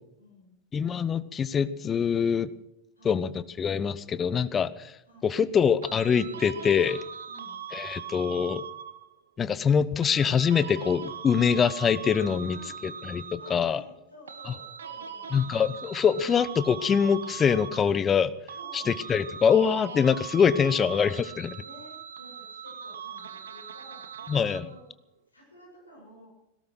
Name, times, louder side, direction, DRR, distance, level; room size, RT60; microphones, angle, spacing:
voice 1, 0.2-0.5 3.0-3.2 5.0-5.3 7.2-7.6 12.4-12.7 13.4-15.3 16.1-16.4 18.6-18.9 20.6-20.9 21.6-24.0 24.5-24.8 25.3-26.3, equal, 80° left, -3 dB, 7.9 m, -52 dB
voice 2, 0.7-2.5 3.0-4.9 5.2-7.0 7.7-8.6 9.4-13.8 15.3-18.3 18.7-21.5 24.3-24.7, left 7 dB, 20° left, 16 dB, 0.7 m, -24 dB
sound 1, 5.8-9.2 10.0-13.8 14.3-18.2 18.5-24.8, right 7 dB, 65° right, 1.2 m, -41 dB
17.5 x 13.0 x 6.2 m, 0.85 s
figure-of-eight pair, 90°, 0 cm